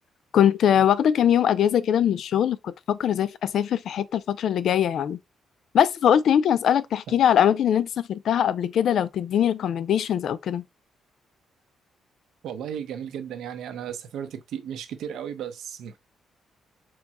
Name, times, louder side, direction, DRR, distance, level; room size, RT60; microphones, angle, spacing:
voice 1, 0.3-5.2 5.7-10.6, left 9 dB, 60° left, 0.4 m, -22 dB
voice 2, 12.4-16.0, right 9 dB, 80° right, 0.7 m, -35 dB
4.6 x 2.2 x 4.1 m
cardioid pair, 165°, 0 cm